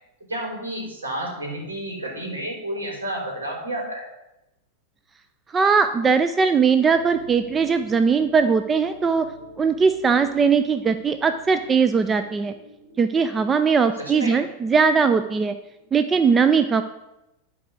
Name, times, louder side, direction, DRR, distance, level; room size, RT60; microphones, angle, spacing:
voice 1, 0.3-4.0 14.0-14.4, right 1 dB, 75° right, -1 dB, 3.8 m, -31 dB
voice 2, 5.5-9.3 9.6-12.5 13.0-15.6 15.9-16.8, right 5 dB, 20° right, 10 dB, 0.4 m, -20 dB
sound 1, 6.9-16.0, equal, 50° right, 3.0 m, -48 dB
11.0 x 4.8 x 6.4 m, 0.93 s
figure-of-eight pair, 90°, 0 cm